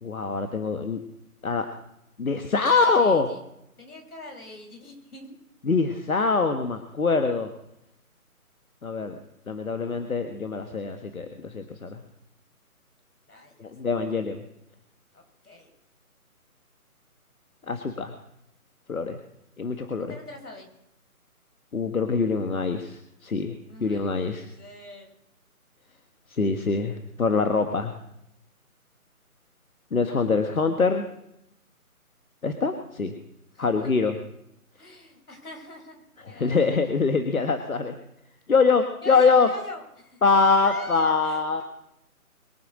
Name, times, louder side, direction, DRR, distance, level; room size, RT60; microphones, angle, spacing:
voice 1, 0.0-1.0 1.4-1.7 2.2-3.3 5.7-7.5 8.8-9.2 9.5-12.0 13.6-14.4 17.7-18.1 18.9-19.2 19.6-20.2 21.7-24.5 26.3-27.9 29.9-31.1 32.4-33.1 33.6-34.1 36.3-37.9 38.5-39.5 40.2-41.6, left 4 dB, 70° left, 7 dB, 1.6 m, -24 dB
voice 2, 2.5-3.4 3.8-5.3 13.3-13.7 15.1-15.7 20.1-20.7 23.7-25.1 33.5-33.9 34.8-36.7 39.0-41.6, left 2 dB, 85° left, 4 dB, 5.6 m, -42 dB
23.0 x 8.9 x 6.4 m, 0.78 s
hypercardioid pair, 175°, 44 cm